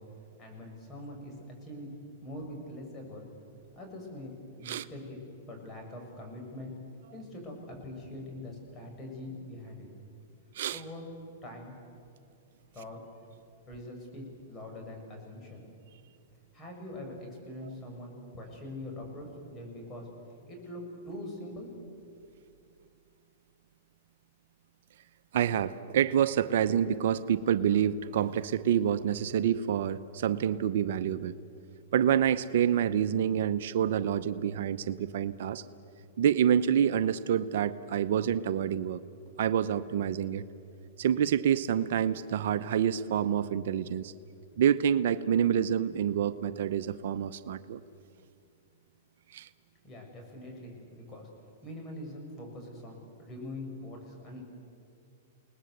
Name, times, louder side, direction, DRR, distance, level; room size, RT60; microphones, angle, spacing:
voice 1, 0.4-1.3 1.6-3.2 3.7-4.3 4.6-5.2 5.5-6.7 7.1-9.9 10.7-11.1 11.4-11.8 12.7-13.0 13.7-15.6 16.5-20.1 20.5-21.7 49.8-51.3 51.6-54.4, left 1 dB, 20° left, 0 dB, 7.3 m, -43 dB
voice 2, 25.3-31.3 31.9-35.6 36.2-39.0 39.4-40.4 41.0-44.1 44.6-47.8 49.3-49.5, right 9 dB, 70° right, 12 dB, 0.8 m, -27 dB
29.5 x 19.5 x 8.1 m, 2.6 s
hypercardioid pair, 130°, 0 cm